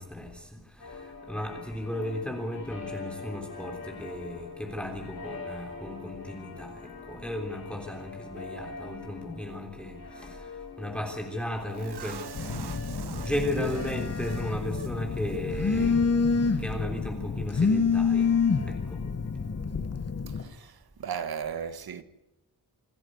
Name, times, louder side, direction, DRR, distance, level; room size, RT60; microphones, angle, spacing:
voice 1, 0.0-12.5 13.2-16.1 16.4-19.0, left 1 dB, 5° left, 3.4 m, -35 dB
sound 1, 0.8-20.5, left 4 dB, 70° left, 7.1 m, -45 dB
sound 2, 11.7-14.9 15.2-15.4 15.7-15.9, right 6 dB, 90° right, 1.2 m, -43 dB
Telephone, 12.3-20.4, left 5 dB, 40° left, 1.4 m, -27 dB
voice 2, 20.3-22.0, right 7 dB, 70° right, 1.5 m, -36 dB
27.0 x 11.0 x 9.5 m
wide cardioid pair, 120°, 38 cm